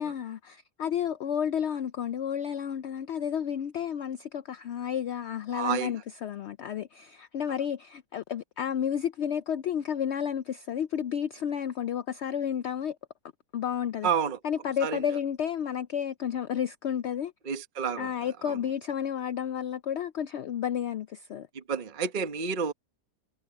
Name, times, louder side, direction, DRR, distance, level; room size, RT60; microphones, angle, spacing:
voice 1, 0.0-13.0 13.5-14.1 14.4-17.3 18.0-21.5, left 9 dB, 75° left, 0.6 m, -31 dB
voice 2, 5.5-5.9 14.0-14.4 14.8-15.0 17.5-18.1 18.5-18.6 21.5-22.7, right 6 dB, 35° right, 1.2 m, -29 dB
omnidirectional pair, 1.7 m